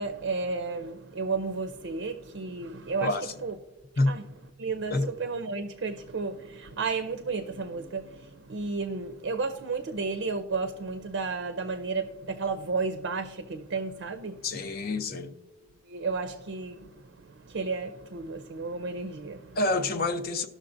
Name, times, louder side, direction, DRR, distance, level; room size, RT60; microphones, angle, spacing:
voice 1, 0.0-3.2 3.4-3.6 4.0-4.2 4.6-14.5 15.8-19.6, right 4 dB, 65° right, 0.5 m, -33 dB
voice 2, 3.0-3.3 4.0-4.1 4.9-5.1 14.4-15.3 19.6-20.5, left 2 dB, 50° left, 0.6 m, -27 dB
19.0 x 6.3 x 2.6 m
head